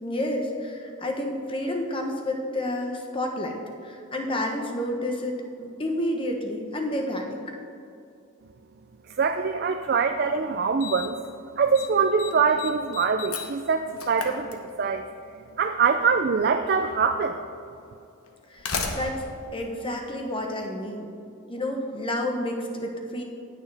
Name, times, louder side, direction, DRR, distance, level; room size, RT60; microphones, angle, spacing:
voice 1, 0.0-7.4 18.5-19.3 19.5-21.1 21.4-23.2, left 1 dB, 25° left, 2 dB, 1.0 m, -30 dB
voice 2, 9.1-11.2 11.6-15.0 15.6-17.4, right 5 dB, 45° right, 6 dB, 0.4 m, -24 dB
Slam, 10.0-10.1 10.8-11.3 11.5-11.9 12.2-15.1 16.2-16.3 17.2-17.3 18.2-20.6, left 5 dB, 85° left, 1.1 m, -35 dB
19.5 x 6.7 x 3.4 m, 2.6 s
head